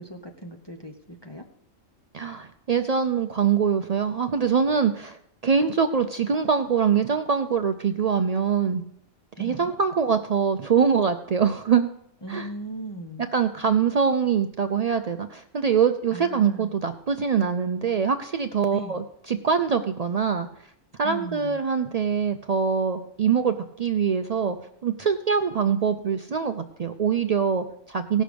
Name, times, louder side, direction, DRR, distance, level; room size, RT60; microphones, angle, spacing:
voice 1, 0.0-1.4 9.4-9.7 12.2-13.3 16.1-16.8 18.7-19.0 21.0-21.6, right 1 dB, 25° left, 2 dB, 0.7 m, -37 dB
voice 2, 2.1-8.8 9.4-11.9 12.3-12.5 13.3-20.5 21.0-24.6 24.8-28.2, right 6 dB, 90° right, 7 dB, 0.3 m, -24 dB
16.5 x 6.4 x 5.1 m, 0.71 s
omnidirectional pair, 1.3 m